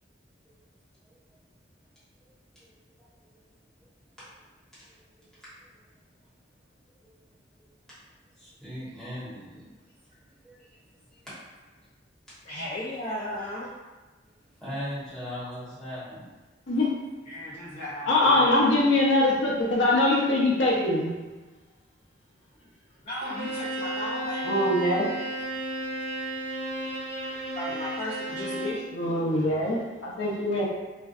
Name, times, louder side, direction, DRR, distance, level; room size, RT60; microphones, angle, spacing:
voice 1, 4.8-5.3 7.0-7.1 8.4-9.6 10.2-10.4 14.6-16.3, equal, 5° left, -12 dB, 1.0 m, -39 dB
voice 2, 12.4-13.7 17.3-18.5 23.0-24.5 27.5-28.9, left 1 dB, 35° left, -9 dB, 0.4 m, -35 dB
voice 3, 18.0-21.1 24.4-25.1 28.9-30.6, left 1 dB, 80° left, -4 dB, 0.6 m, -23 dB
Bowed string instrument, 23.2-28.9, right 1 dB, 75° right, 0.8 m, -33 dB
2.5 x 2.2 x 2.3 m, 1.2 s
head